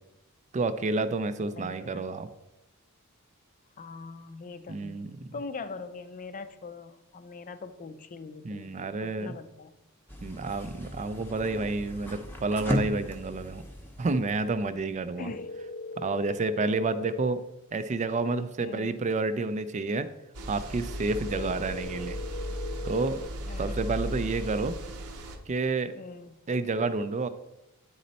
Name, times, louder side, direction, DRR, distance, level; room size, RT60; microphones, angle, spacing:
voice 1, 0.5-2.3 4.7-5.3 8.4-9.3 10.2-13.6 14.0-15.3 16.0-17.4 17.7-20.1 20.5-22.2 22.8-23.2 23.6-24.8 25.5-25.9 26.5-27.3, right 3 dB, 35° right, 12 dB, 0.4 m, -29 dB
voice 2, 1.5-2.0 3.8-5.0 5.3-9.8 15.2-15.5 18.6-19.0 21.3-21.7 23.5-23.9 26.0-26.4, left 4 dB, 35° left, 10 dB, 0.5 m, -42 dB
sound 1, 10.1-15.2, left 1 dB, 10° left, 0.8 m, -37 dB
sound 2, 15.3-17.3 21.3-23.3, left 2 dB, 80° left, 0.8 m, -39 dB
sound 3, 20.3-25.4, equal, 70° right, 0.8 m, -36 dB
9.4 x 4.2 x 4.0 m, 0.94 s
head